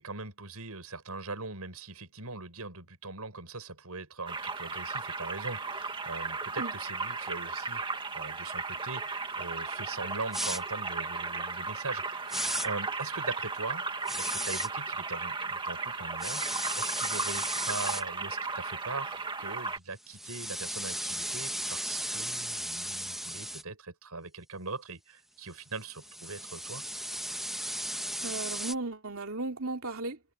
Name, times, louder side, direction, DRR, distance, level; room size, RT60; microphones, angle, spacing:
voice 1, 0.0-12.3 12.6-13.8 14.2-26.8, right 3 dB, 90° right, 6.3 m, -41 dB
sound 1, 4.3-19.8, right 4 dB, 20° right, 2.0 m, -35 dB
sound 2, 10.3-10.6 12.3-12.7 14.1-14.7 16.2-18.0 20.1-23.6 25.7-28.7, right 1 dB, ahead, 1.4 m, -35 dB
voice 2, 28.2-30.2, right 2 dB, 65° right, 3.0 m, -35 dB
head